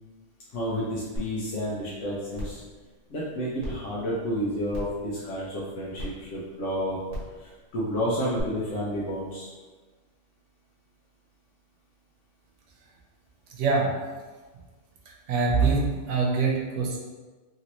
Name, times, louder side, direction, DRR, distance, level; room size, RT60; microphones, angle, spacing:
voice 1, 0.5-2.6 3.1-7.0 7.4-9.5, equal, 85° left, -7 dB, 1.0 m, -30 dB
sound 1, 1.2-1.3 1.7-1.8 2.3-2.6 3.6-3.7 4.7-5.0 6.0-6.1 7.1-7.3 8.4-8.5, equal, 45° right, 1.1 m, -34 dB
voice 2, 13.6-13.9 15.3-17.0, right 4 dB, 80° right, -1 dB, 1.0 m, -24 dB
3.0 x 2.6 x 2.9 m, 1.3 s
omnidirectional pair, 1.2 m